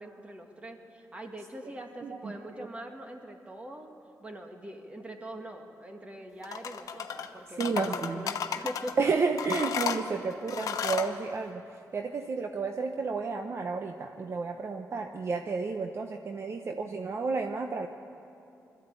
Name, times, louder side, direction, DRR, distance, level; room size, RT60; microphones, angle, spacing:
voice 1, 0.0-3.9 4.2-9.0, right 1 dB, 20° right, 3 dB, 2.1 m, -43 dB
voice 2, 2.0-2.4 7.6-8.3 9.0-11.6 11.9-17.9, right 4 dB, 45° right, 5 dB, 0.9 m, -31 dB
sound 1, 6.4-7.3 7.6-8.9 9.4-11.1, left 7 dB, 70° left, 1.1 m, -33 dB
22.5 x 14.0 x 9.0 m, 2.8 s
cardioid pair, 115°, 6 cm